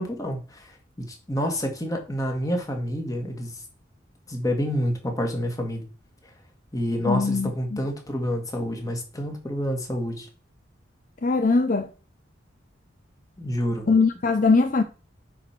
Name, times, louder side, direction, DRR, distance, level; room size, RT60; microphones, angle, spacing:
voice 1, 0.0-3.5 4.3-5.8 6.7-10.3 13.4-13.9, equal, 20° left, 1.9 m, -28 dB
voice 2, 7.0-7.8 11.2-11.9 13.9-14.8, left 4 dB, 45° left, 0.5 m, -21 dB
8.3 x 4.4 x 5.9 m
head